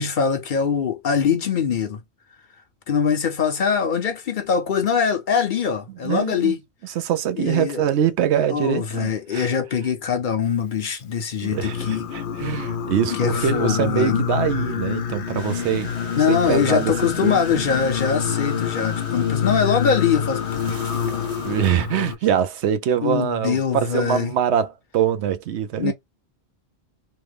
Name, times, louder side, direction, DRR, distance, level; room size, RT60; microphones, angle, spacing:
voice 1, 0.0-2.0 2.9-6.6 7.4-7.9 8.5-12.1 13.1-14.2 16.1-21.8 23.0-24.3 25.8-25.9, left 7 dB, 55° left, 0.7 m, -23 dB
voice 2, 6.0-6.5 6.8-9.5 11.4-15.9 16.3-16.9 17.2-17.6 21.4-25.9, right 9 dB, 80° right, 0.9 m, -23 dB
Singing, 11.4-22.2, left 7 dB, 90° left, 1.0 m, -27 dB
sound 1, 15.3-21.7, right 2 dB, 35° right, 1.1 m, -40 dB
3.2 x 2.0 x 3.3 m
omnidirectional pair, 1.1 m